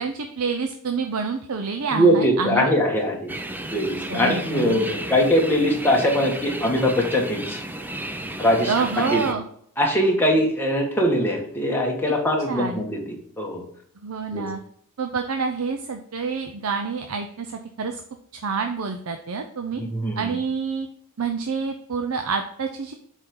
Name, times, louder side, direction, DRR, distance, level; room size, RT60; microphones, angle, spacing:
voice 1, 0.0-2.7 4.1-4.9 8.7-9.4 12.5-12.8 14.0-14.6 15.0-18.0 18.3-19.8 20.2-20.9 21.2-22.9, right 5 dB, 70° right, 5 dB, 0.6 m, -27 dB
voice 2, 1.9-3.3 3.7-7.6 8.4-9.2 9.8-13.6 14.3-14.5 19.8-20.3, equal, 10° left, -1 dB, 1.5 m, -22 dB
sound 1, 3.3-9.3, right 1 dB, 10° right, 0.5 m, -33 dB
7.9 x 4.5 x 3.7 m, 0.67 s
head